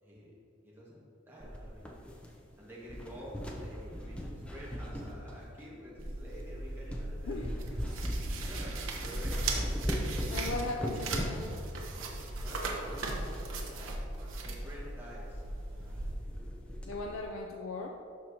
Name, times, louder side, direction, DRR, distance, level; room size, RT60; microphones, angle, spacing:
voice 1, 0.0-0.3 0.6-1.9 2.6-7.9 8.3-10.7 12.4-15.4 15.8-16.4, equal, 10° right, -7 dB, 1.6 m, -49 dB
sound 1, 1.4-2.5 2.8-5.8 6.4-6.5 6.9-7.1 7.4-13.5 13.8-13.9 14.1-14.2 14.6-14.8 15.2-15.3 15.6-16.0 16.3-17.2, equal, 5° left, 0.6 m, -39 dB
sound 2, 6.0-16.1, right 2 dB, 85° right, 0.9 m, -38 dB
voice 2, 10.3-11.6 16.8-17.9, left 2 dB, 80° left, 2 dB, 0.5 m, -38 dB
12.0 x 4.6 x 2.8 m, 2.5 s
head